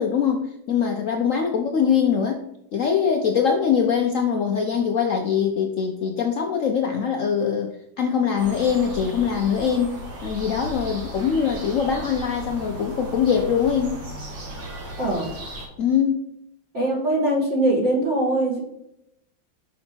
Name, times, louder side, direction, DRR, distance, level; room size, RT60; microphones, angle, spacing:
voice 1, 0.0-2.4 2.7-14.0 15.8-16.2, left 7 dB, 70° left, 3 dB, 0.7 m, -23 dB
sound 1, 8.4-15.7, right 1 dB, 70° right, 2.4 m, -36 dB
voice 2, 15.0-15.3 16.7-18.6, right 1 dB, 40° right, -4 dB, 1.7 m, -22 dB
6.1 x 5.3 x 4.4 m, 0.81 s
omnidirectional pair, 2.1 m